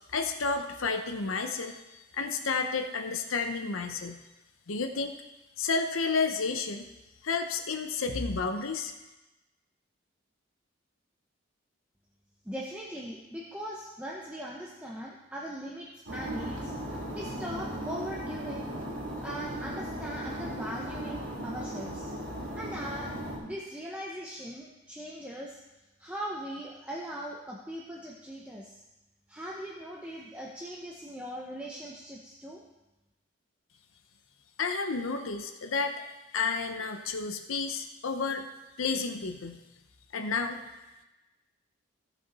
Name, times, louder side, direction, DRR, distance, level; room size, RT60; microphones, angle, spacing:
voice 1, 0.1-4.2 4.7-5.1 5.6-6.9 7.2-8.9 34.6-36.0 36.3-38.5 38.8-39.6 40.1-40.6, left 4 dB, 80° left, 6 dB, 0.7 m, -31 dB
voice 2, 12.4-16.7 17.1-18.7 19.2-22.1 22.5-25.6 26.0-28.8 29.3-32.6, equal, 5° right, -3 dB, 0.7 m, -40 dB
sound 1, 16.1-23.4, right 1 dB, 80° right, 2.9 m, -37 dB
16.0 x 5.8 x 4.1 m, 1.1 s
head